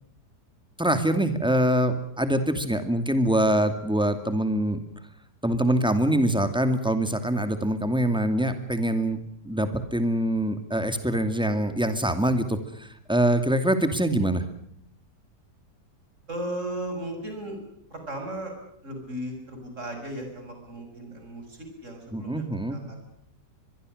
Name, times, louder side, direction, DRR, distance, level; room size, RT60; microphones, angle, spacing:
voice 1, 0.8-4.8 5.4-9.2 9.5-14.4 22.1-22.8, right 1 dB, 5° right, 8 dB, 2.3 m, -24 dB
voice 2, 16.3-17.6 17.9-18.5 18.8-22.4 22.7-23.0, right 1 dB, 45° right, 4 dB, 6.7 m, -36 dB
24.5 x 22.0 x 6.6 m, 0.70 s
omnidirectional pair, 1.8 m